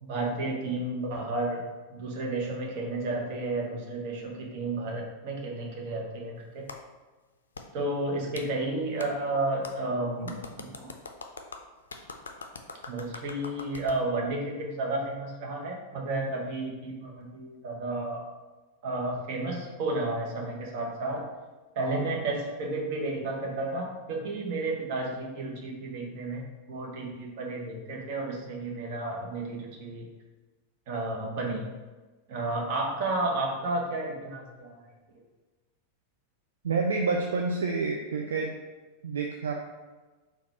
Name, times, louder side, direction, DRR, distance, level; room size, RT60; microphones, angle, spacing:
voice 1, 0.0-1.7 1.9-6.6 7.7-10.9 12.9-18.2 18.8-21.3 21.7-26.4 26.7-30.1 30.9-31.8 32.3-34.8, right 2 dB, 45° right, 0 dB, 0.9 m, -32 dB
Clapping, 6.7-6.8 7.5-7.7 8.3-8.5 9.0-9.1 9.6-9.7 10.3-14.0, left 4 dB, 70° left, 0.3 m, -42 dB
voice 2, 36.6-38.5 39.0-39.5, right 4 dB, 65° right, 2 dB, 0.3 m, -28 dB
4.0 x 2.3 x 4.1 m, 1.3 s
figure-of-eight pair, 90°, 0 cm